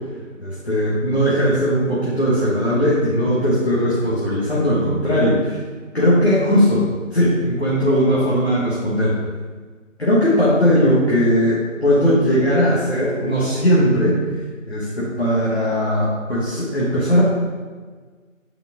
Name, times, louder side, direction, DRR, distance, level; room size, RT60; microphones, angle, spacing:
voice 1, 0.4-5.6 5.9-6.8 7.1-9.1 10.0-14.4 14.7-17.2, equal, 55° left, -8 dB, 1.7 m, -18 dB
8.8 x 3.7 x 3.8 m, 1.5 s
figure-of-eight pair, 175°, 39 cm